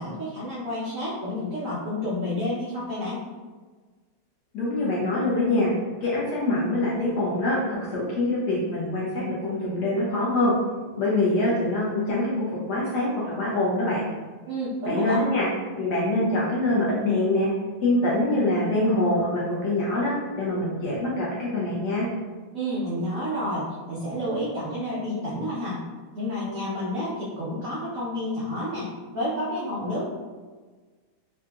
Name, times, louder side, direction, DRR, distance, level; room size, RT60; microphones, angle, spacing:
voice 1, 0.0-3.2 14.5-15.2 22.5-25.8 26.1-30.1, left 1 dB, 85° right, -8 dB, 0.7 m, -30 dB
voice 2, 4.5-5.7 6.0-10.5 11.0-14.0 14.8-15.4 15.8-17.5 17.8-22.1, left 2 dB, 65° left, -6 dB, 1.1 m, -24 dB
3.8 x 2.5 x 2.3 m, 1.4 s
omnidirectional pair, 2.3 m